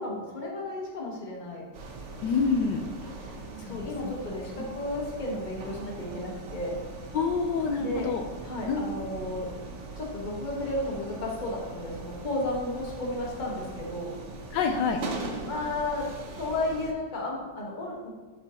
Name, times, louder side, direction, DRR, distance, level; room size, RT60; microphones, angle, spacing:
voice 1, 0.0-1.7 3.4-6.8 7.8-8.1 8.4-9.5 10.0-14.1 15.4-16.1 16.4-18.1, left 2 dB, 30° left, -2 dB, 1.2 m, -33 dB
sound 1, 1.7-16.9, right 3 dB, 50° right, 1.0 m, -41 dB
voice 2, 2.2-2.8 3.7-4.1 7.1-8.2 8.7-8.9 14.5-15.0, left 5 dB, 80° left, 5 dB, 1.2 m, -27 dB
10.5 x 4.9 x 2.8 m, 1.5 s
omnidirectional pair, 1.9 m